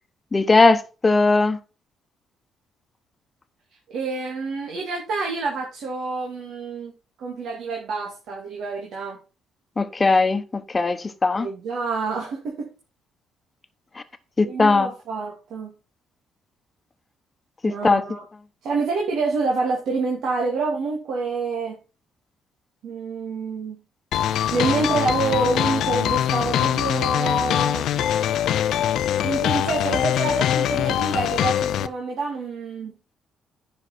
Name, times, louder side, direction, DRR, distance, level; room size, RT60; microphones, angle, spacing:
voice 1, 0.3-1.6 9.8-11.5 14.4-14.9 17.6-18.0, left 3 dB, 30° left, 1.1 m, -19 dB
voice 2, 3.9-6.9 7.2-9.2 11.4-12.7 14.4-15.7 17.6-18.2 18.6-21.8 22.8-23.8 24.5-27.9 29.2-32.9, right 4 dB, 70° right, 2.3 m, -27 dB
sound 1, 24.1-31.9, left 11 dB, 75° left, 0.6 m, -23 dB
10.0 x 5.6 x 4.2 m
supercardioid pair, 75°, 0 cm